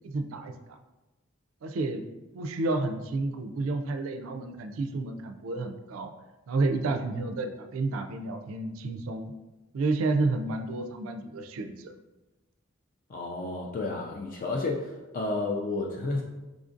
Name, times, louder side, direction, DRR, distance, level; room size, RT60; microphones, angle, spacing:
voice 1, 0.0-0.8 1.6-2.0 2.3-6.1 6.5-9.3 9.7-11.9, right 2 dB, 85° right, 7 dB, 0.4 m, -30 dB
voice 2, 13.1-16.2, left 2 dB, 40° left, 0 dB, 0.3 m, -31 dB
4.9 x 2.4 x 2.5 m, 1.1 s
head